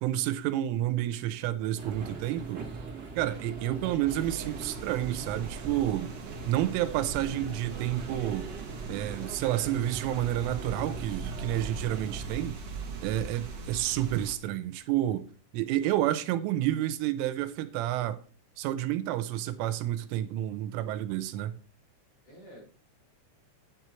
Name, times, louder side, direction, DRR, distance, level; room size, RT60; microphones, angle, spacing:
voice 1, 0.0-2.7 3.2-6.1 6.5-8.5 8.9-12.6 13.0-15.3 15.5-18.2 18.6-21.5, right 13 dB, 90° right, 3.3 m, -30 dB
sound 1, 1.8-12.4, right 4 dB, 55° right, 1.1 m, -42 dB
sound 2, 4.1-14.3, right 4 dB, 70° right, 1.4 m, -40 dB
voice 2, 15.8-16.2 22.2-22.6, equal, 40° left, 5.9 m, -50 dB
9.8 x 8.2 x 4.5 m
omnidirectional pair, 5.7 m